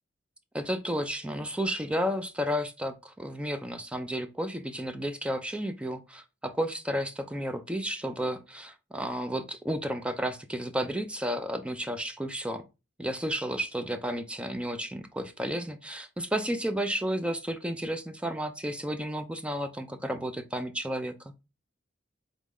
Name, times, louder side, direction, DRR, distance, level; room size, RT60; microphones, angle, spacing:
voice 1, 0.5-12.6 13.0-21.3, equal, 5° right, 0.4 m, -32 dB
4.0 x 3.2 x 3.6 m
head